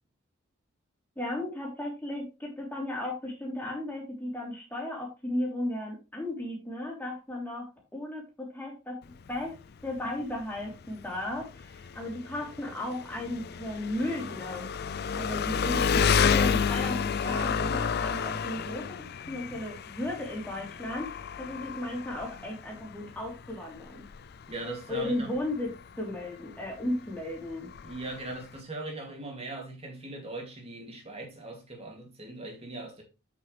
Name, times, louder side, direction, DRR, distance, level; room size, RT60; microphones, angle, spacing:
voice 1, 1.1-9.0 9.3-9.5 9.8-14.7 15.1-24.0 24.9-27.7, left 1 dB, 10° left, 3.4 m, -35 dB
Engine, 9.0-28.6, left 6 dB, 50° left, 0.4 m, -31 dB
voice 2, 24.5-25.3 27.8-33.0, right 2 dB, 30° right, 2.7 m, -39 dB
8.5 x 6.8 x 3.3 m
head